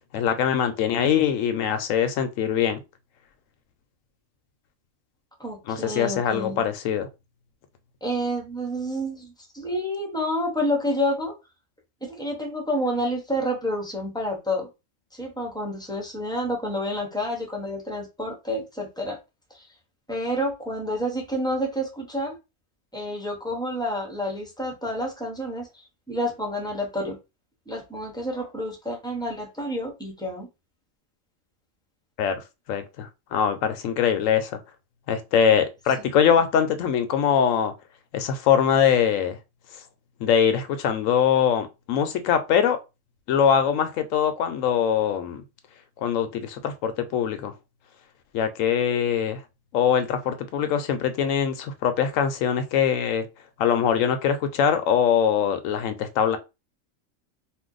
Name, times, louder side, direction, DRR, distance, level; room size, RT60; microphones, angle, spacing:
voice 1, 0.1-2.8 5.7-7.1 32.2-32.4 32.7-34.6 35.1-37.7 38.1-39.4 40.2-42.8 43.3-45.4 46.0-47.5 48.3-49.4 49.7-53.3 53.6-56.4, left 8 dB, 80° left, 1.0 m, -22 dB
voice 2, 5.4-6.6 8.0-11.3 12.0-14.7 15.1-19.2 19.5-19.7 20.1-22.4 22.9-27.2 27.7-30.5, equal, 5° left, 0.6 m, -29 dB
2.6 x 2.2 x 3.7 m
omnidirectional pair, 1.4 m